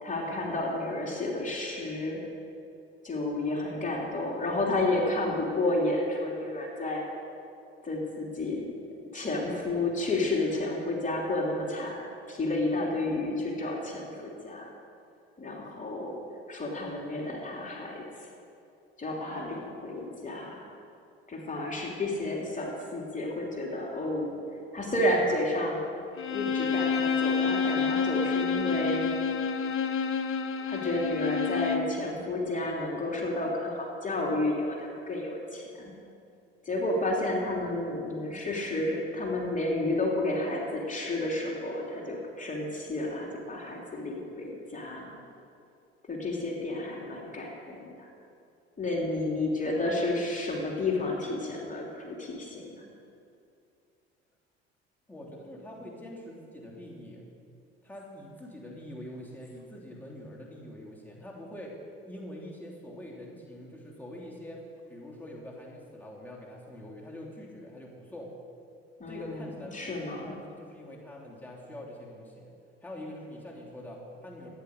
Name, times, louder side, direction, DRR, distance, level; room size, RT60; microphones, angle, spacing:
voice 1, 0.0-2.2 3.0-7.0 7.8-8.6 9.1-14.7 15.4-16.2 16.5-18.3 19.0-20.7 21.3-24.4 24.7-25.8 26.3-29.1 30.7-35.9 36.6-45.0 46.1-48.1 48.8-52.8 69.0-69.4 69.7-70.4, left 2 dB, 25° left, -2 dB, 3.1 m, -31 dB
Bowed string instrument, 26.2-32.0, left 5 dB, 40° left, 1.4 m, -28 dB
voice 2, 55.1-57.2 57.8-61.7 62.0-64.6 64.9-68.3 69.1-72.5 72.8-74.5, left 1 dB, 5° left, -3 dB, 3.2 m, -44 dB
14.0 x 9.9 x 6.6 m, 2.5 s
hypercardioid pair, 65°, 31 cm